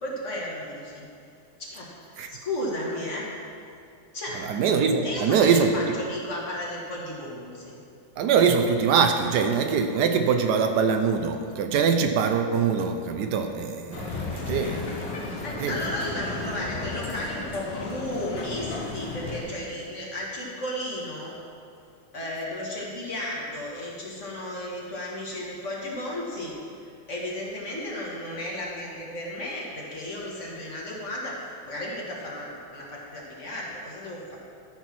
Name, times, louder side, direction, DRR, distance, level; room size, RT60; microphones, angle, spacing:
voice 1, 0.0-1.1 1.6-3.3 4.1-4.4 5.0-7.8 15.4-21.4 22.1-34.4, left 1 dB, 45° left, -4 dB, 1.8 m, -34 dB
voice 2, 4.5-5.7 8.2-15.3 15.6-15.8, right 6 dB, 75° right, 6 dB, 1.1 m, -23 dB
Male speech man speaking, 13.9-19.4, left 3 dB, 85° left, 2.0 m, -34 dB
12.5 x 4.5 x 5.9 m, 2.4 s
omnidirectional pair, 1.9 m